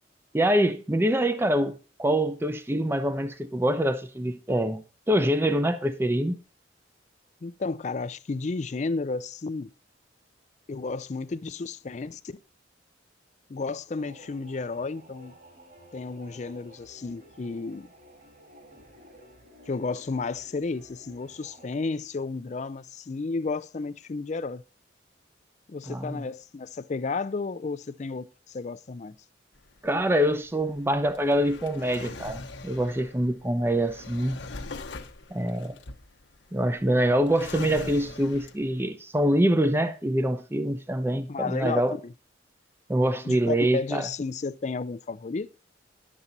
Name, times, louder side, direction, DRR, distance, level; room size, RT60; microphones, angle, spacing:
voice 1, 0.3-6.4 25.9-26.2 29.8-34.4 35.3-35.8 36.5-42.0 42.9-44.1, right 1 dB, 15° right, 0.6 m, -25 dB
voice 2, 7.4-9.7 10.7-12.4 13.5-15.3 15.9-17.9 19.7-24.6 25.7-29.2 41.3-42.1 43.2-45.5, left 4 dB, 40° left, 0.4 m, -32 dB
sound 1, 14.0-21.7, equal, 50° right, 5.4 m, -53 dB
Drawer open or close, 29.5-38.8, left 3 dB, 80° left, 1.0 m, -42 dB
11.0 x 7.3 x 4.0 m
head